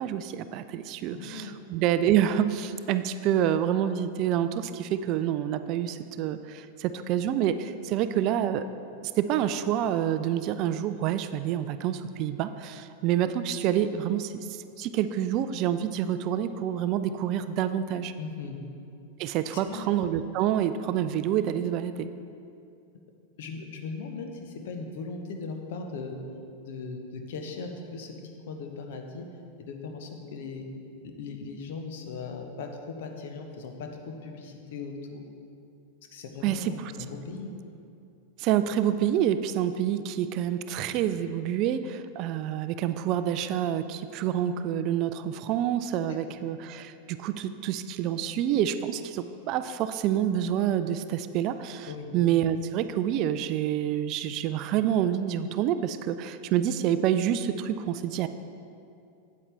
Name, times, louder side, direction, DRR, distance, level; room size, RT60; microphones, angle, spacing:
voice 1, 0.0-8.6 9.0-18.1 19.2-22.1 36.4-36.9 38.4-58.3, right 10 dB, 40° right, 11 dB, 0.3 m, -27 dB
voice 2, 1.1-1.5 18.2-18.6 19.5-19.9 23.4-26.2 26.6-28.1 28.5-29.3 29.6-30.7 31.2-35.2 36.1-37.5 46.3-46.4 51.9-52.2, left 4 dB, 55° left, 4 dB, 0.9 m, -38 dB
8.5 x 8.5 x 3.4 m, 2.5 s
figure-of-eight pair, 90°, 0 cm